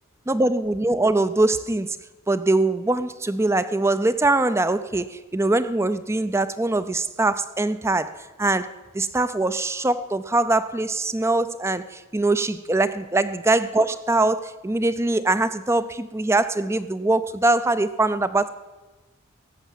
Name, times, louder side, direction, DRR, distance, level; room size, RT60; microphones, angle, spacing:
voice 1, 0.3-2.0 2.3-18.5, right 2 dB, 10° right, 14 dB, 0.4 m, -22 dB
17.0 x 7.2 x 7.5 m, 1.2 s
head